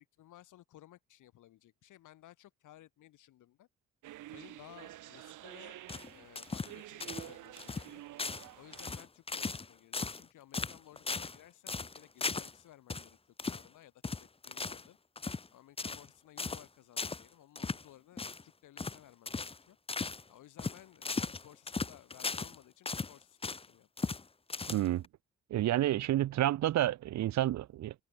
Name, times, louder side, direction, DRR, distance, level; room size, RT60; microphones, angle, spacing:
voice 1, 0.0-3.7 4.3-5.8 6.1-8.0 8.5-13.2 13.4-15.0 15.5-19.8 20.3-23.9, left 13 dB, 80° left, 7.8 m, -58 dB
sound 1, 4.0-9.1, right 15 dB, 80° right, 1.9 m, -49 dB
sound 2, 5.9-6.8 7.0-7.3 7.6-7.9 8.2-8.5 8.7-9.7 9.9-10.3 10.5-11.4 11.7-12.5 12.9-13.1 13.4-13.7 14.0-14.9 15.2-15.5 15.8-16.1 16.4-16.7 17.0-17.2 17.6-17.8 18.2-18.4 18.8-19.0 19.3-19.6 19.9-20.2 20.6-22.6 22.9-23.7 24.0-24.2 24.5-25.1, left 4 dB, 20° left, 0.9 m, -37 dB
voice 2, 24.7-25.0 25.5-27.9, right 13 dB, 65° right, 0.8 m, -29 dB
cardioid pair, 90°, 30 cm